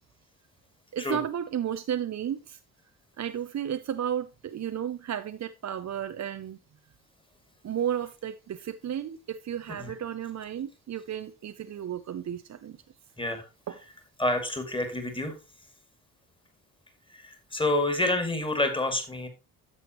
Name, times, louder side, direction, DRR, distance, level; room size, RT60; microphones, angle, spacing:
voice 1, 0.9-2.6 3.2-6.6 7.6-12.8 13.7-13.8, right 9 dB, 40° right, 0.6 m, -33 dB
voice 2, 14.2-15.3 17.1-19.3, left 2 dB, 10° left, 2.3 m, -28 dB
9.8 x 6.8 x 3.0 m
hypercardioid pair, 50°, 46 cm